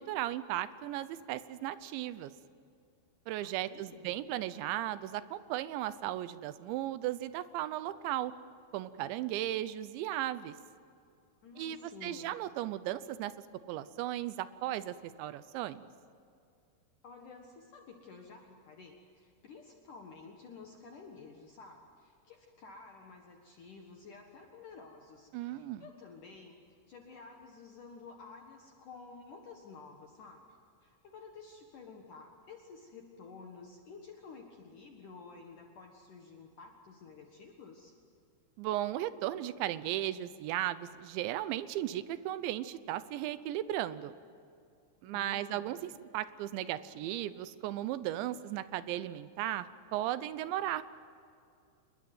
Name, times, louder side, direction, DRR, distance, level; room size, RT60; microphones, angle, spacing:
voice 1, 0.0-2.3 3.3-8.3 8.7-10.6 11.6-13.3 13.7-15.9 25.3-25.8 38.6-44.1 45.0-50.8, right 13 dB, 80° right, 14 dB, 3.1 m, -36 dB
voice 2, 3.4-4.1 11.4-12.4 17.0-30.5 30.8-37.9 45.1-45.9, left 4 dB, 55° left, 2 dB, 2.6 m, -52 dB
27.5 x 21.5 x 9.3 m, 2.4 s
omnidirectional pair, 5.3 m